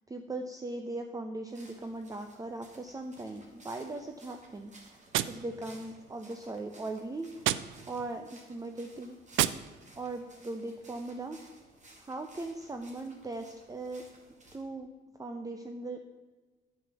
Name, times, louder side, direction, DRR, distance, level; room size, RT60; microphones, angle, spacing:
voice 1, 0.1-5.0 5.3-7.6 7.9-9.2 10.0-11.4 12.0-14.0 14.5-14.9 15.2-16.0, right 2 dB, 20° right, 5 dB, 0.8 m, -39 dB
sound 1, 1.5-14.6, right 2 dB, 35° right, 2.5 m, -57 dB
Gunshot gunfire, 5.1-6.2 7.4-8.2 9.3-10.2, right 13 dB, 85° right, 0.5 m, -33 dB
9.0 x 7.1 x 6.9 m, 1.3 s
cardioid pair, 90°, 20 cm